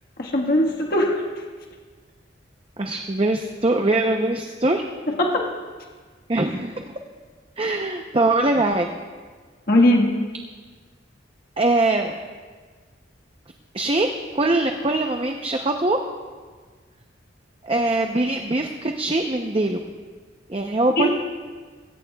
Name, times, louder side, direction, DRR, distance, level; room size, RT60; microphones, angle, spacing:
voice 1, 0.2-1.2 5.1-5.5 9.7-10.1 21.0-21.1, left 1 dB, 55° left, -1 dB, 1.5 m, -19 dB
voice 2, 2.8-4.8 6.3-6.9 7.6-8.9 11.6-12.2 13.7-14.1 14.3-16.0 17.6-19.8 20.5-21.1, right 2 dB, 30° right, 4 dB, 0.7 m, -22 dB
20.5 x 17.0 x 2.3 m, 1.5 s
head